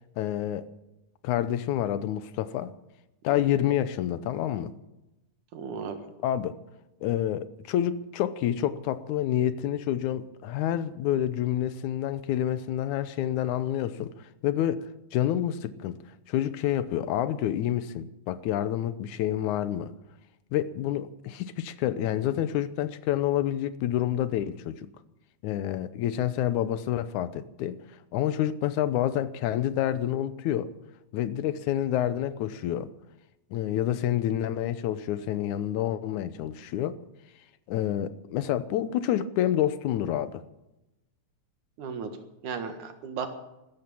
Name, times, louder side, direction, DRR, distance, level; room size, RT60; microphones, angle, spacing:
voice 1, 0.2-0.7 1.2-2.7 3.2-4.7 6.2-6.5 7.0-14.1 14.4-14.8 15.1-16.0 16.3-19.9 20.5-24.9 25.4-27.8 28.1-30.7 31.1-32.9 33.5-37.0 37.7-40.4, left 11 dB, 80° left, 2.2 m, -28 dB
voice 2, 5.5-6.0 41.8-42.1 42.4-43.3, right 6 dB, 80° right, 3.1 m, -35 dB
14.5 x 13.5 x 7.1 m
omnidirectional pair, 3.5 m